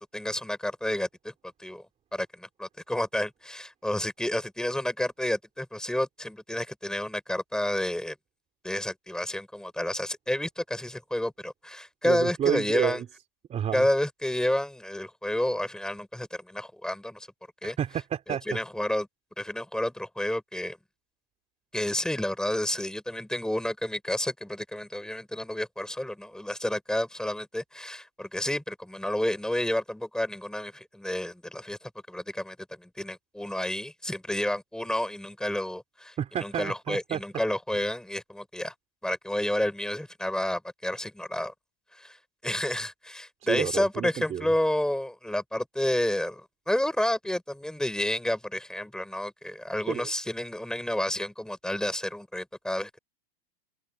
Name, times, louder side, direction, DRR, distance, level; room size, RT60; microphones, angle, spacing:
voice 1, 0.1-1.8 2.1-8.2 8.6-13.0 13.7-17.3 17.6-17.8 18.5-19.1 19.4-20.8 21.7-38.7 39.0-41.5 42.0-42.2 42.4-53.0, left 1 dB, ahead, 5.1 m, -30 dB
voice 2, 12.0-13.0 13.5-13.9 17.8-18.4 36.2-37.2 43.4-44.5 49.9-50.1, right 9 dB, 25° right, 3.3 m, -30 dB
supercardioid pair, 140°, 29 cm